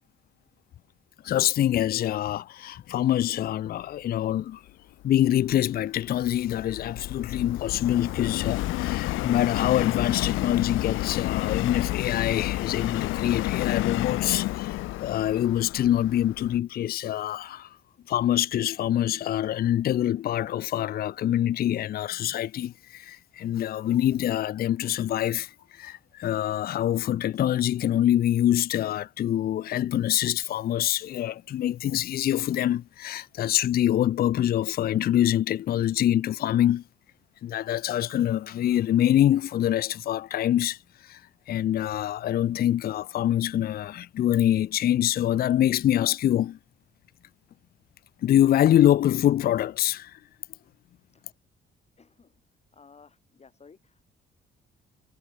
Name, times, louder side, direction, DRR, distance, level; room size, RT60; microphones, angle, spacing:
voice 1, 1.2-4.6 5.0-17.7 18.1-36.8 37.4-41.2 41.5-46.6 48.2-50.2, left 12 dB, 50° left, 0.4 m, -25 dB
Subway metro underground, 5.3-16.6, left 17 dB, 85° left, 0.7 m, -30 dB
voice 2, 52.0-52.4 52.7-54.0, left 5 dB, 35° left, 2.9 m, -55 dB
cardioid pair, 90°, 20 cm